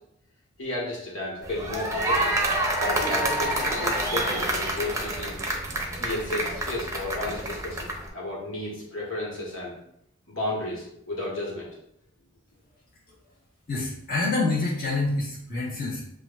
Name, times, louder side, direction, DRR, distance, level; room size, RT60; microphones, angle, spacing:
voice 1, 0.6-2.4 2.8-5.3 6.0-9.8 10.3-11.7, left 2 dB, 85° left, -4 dB, 1.5 m, -32 dB
sound 1, 1.4-8.1, right 1 dB, 15° right, 0.6 m, -28 dB
voice 2, 13.7-16.0, left 3 dB, 50° left, -5 dB, 1.3 m, -27 dB
7.6 x 2.6 x 2.5 m, 0.75 s
head